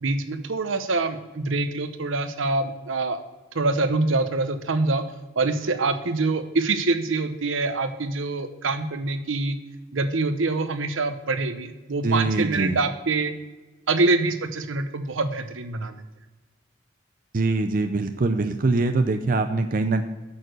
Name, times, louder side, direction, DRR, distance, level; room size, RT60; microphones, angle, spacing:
voice 1, 0.0-3.2 3.5-5.1 5.4-9.6 9.9-13.3 13.9-15.9, right 3 dB, 80° right, 10 dB, 0.8 m, -25 dB
voice 2, 12.0-12.8 17.3-20.0, right 3 dB, 45° right, 7 dB, 0.5 m, -23 dB
8.5 x 6.7 x 6.4 m, 1.2 s
head